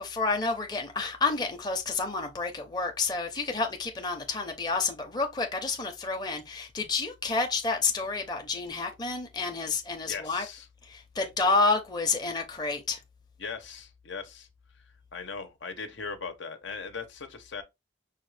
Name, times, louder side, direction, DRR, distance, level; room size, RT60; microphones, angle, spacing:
voice 1, 0.0-10.4 10.8-13.0, left 4 dB, 20° left, 0.6 m, -29 dB
voice 2, 10.1-10.7 11.2-11.5 13.4-14.5 15.1-17.6, left 5 dB, 85° left, 0.9 m, -39 dB
5.6 x 2.4 x 3.2 m
head